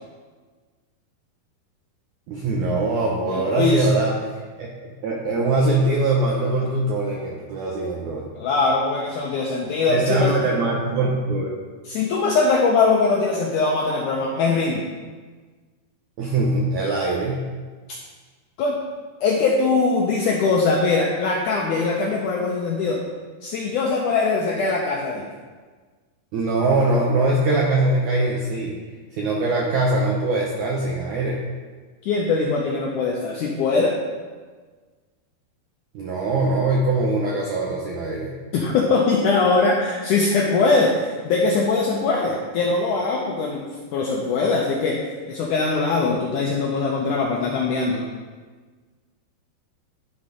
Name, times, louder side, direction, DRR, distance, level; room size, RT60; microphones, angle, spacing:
voice 1, 2.3-4.7 5.0-8.3 9.9-11.5 16.2-17.5 26.3-28.8 29.1-31.4 35.9-38.3, right 2 dB, 80° right, -2 dB, 1.7 m, -22 dB
voice 2, 3.3-3.9 8.4-10.3 11.9-14.8 18.6-18.8 19.2-23.0 23.4-25.3 32.0-33.9 38.5-43.7 43.9-45.0 45.3-48.1, left 3 dB, 85° left, -1 dB, 1.8 m, -21 dB
11.0 x 4.2 x 5.0 m, 1.4 s
omnidirectional pair, 4.5 m